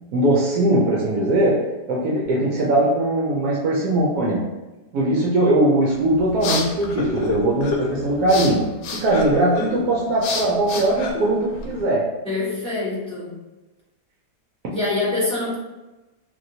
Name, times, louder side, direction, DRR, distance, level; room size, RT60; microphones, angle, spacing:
voice 1, 0.1-4.5 4.9-12.1, right 1 dB, 70° right, -4 dB, 1.0 m, -20 dB
sound 1, 5.9-11.8, left 3 dB, 85° left, 1.2 m, -29 dB
voice 2, 12.2-13.3 14.7-15.5, left 3 dB, 10° left, -9 dB, 0.3 m, -25 dB
2.9 x 2.9 x 2.6 m, 1.1 s
omnidirectional pair, 1.8 m